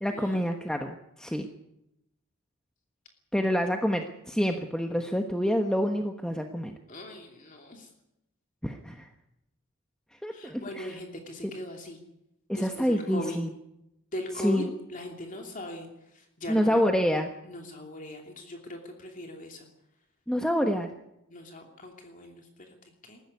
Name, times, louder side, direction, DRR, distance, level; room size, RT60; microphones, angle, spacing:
voice 1, 0.0-1.5 3.3-6.7 8.6-9.1 10.2-11.0 12.5-13.5 14.4-14.7 16.5-17.3 20.3-20.9, equal, 5° left, 4 dB, 1.2 m, -27 dB
voice 2, 6.9-7.9 10.3-12.0 12.5-13.4 14.1-14.6 14.9-15.9 16.1-16.8 17.4-19.6 21.3-22.7 23.0-23.2, left 1 dB, 40° left, 2 dB, 2.9 m, -40 dB
20.5 x 15.0 x 9.7 m, 0.85 s
head